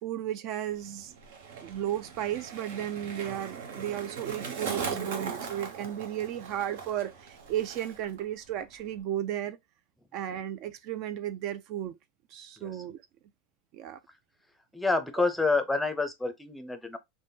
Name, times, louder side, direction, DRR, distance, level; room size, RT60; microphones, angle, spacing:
voice 1, 0.0-1.1 1.6-9.6 10.1-12.0 12.3-13.0 13.7-14.0, right 11 dB, 55° right, 0.3 m, -34 dB
Skateboard, 0.7-8.2 8.5-9.0, right 6 dB, 85° right, 0.9 m, -39 dB
voice 2, 14.7-17.0, left 3 dB, 5° left, 0.5 m, -28 dB
3.4 x 2.1 x 2.7 m
supercardioid pair, 125°, 0 cm